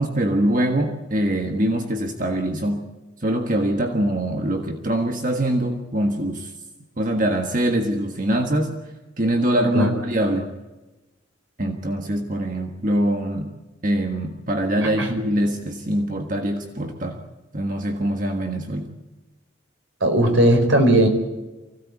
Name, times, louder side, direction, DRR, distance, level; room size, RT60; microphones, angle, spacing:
voice 1, 0.0-2.9 3.2-6.5 7.0-8.7 9.2-10.5 11.6-13.5 13.8-17.2 17.5-18.9, right 1 dB, 45° right, 3 dB, 1.6 m, -23 dB
voice 2, 14.8-15.1 20.0-21.1, right 1 dB, 85° right, 5 dB, 4.7 m, -17 dB
24.0 x 17.0 x 8.4 m, 1.1 s
head